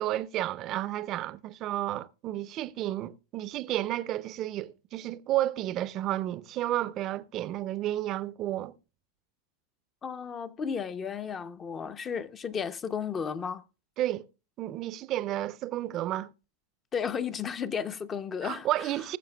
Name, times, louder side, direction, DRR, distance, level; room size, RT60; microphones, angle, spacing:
voice 1, 0.0-8.8 14.0-14.3 14.6-16.3 18.4-19.2, right 14 dB, 45° right, 0.5 m, -31 dB
voice 2, 10.0-13.6 16.9-18.7, left 7 dB, 30° left, 0.7 m, -33 dB
20.5 x 7.0 x 2.3 m
hypercardioid pair, 100°, 0 cm